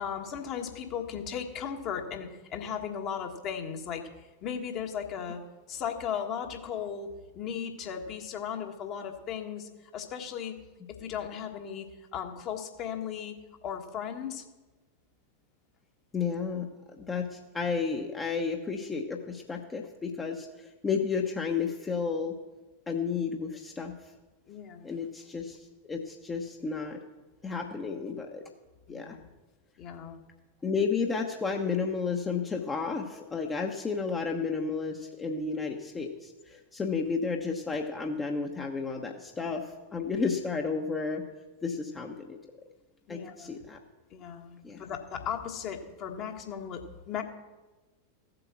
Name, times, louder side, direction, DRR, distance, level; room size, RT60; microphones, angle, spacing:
voice 1, 0.0-5.4 5.7-7.1 7.3-10.5 10.9-11.9 12.1-13.3 13.6-14.4 24.5-24.9 28.9-29.3 29.8-30.2 40.0-40.3 43.1-43.5 44.1-47.2, left 8 dB, 35° left, 3 dB, 1.6 m, -36 dB
voice 2, 16.1-16.7 17.0-22.4 22.9-23.9 24.8-27.0 27.4-28.4 28.9-29.2 30.6-41.2 41.6-42.4 43.1-43.8 44.6-44.8, left 5 dB, 15° left, 2 dB, 1.1 m, -32 dB
15.0 x 7.8 x 6.1 m, 1.2 s
figure-of-eight pair, 90°, 0 cm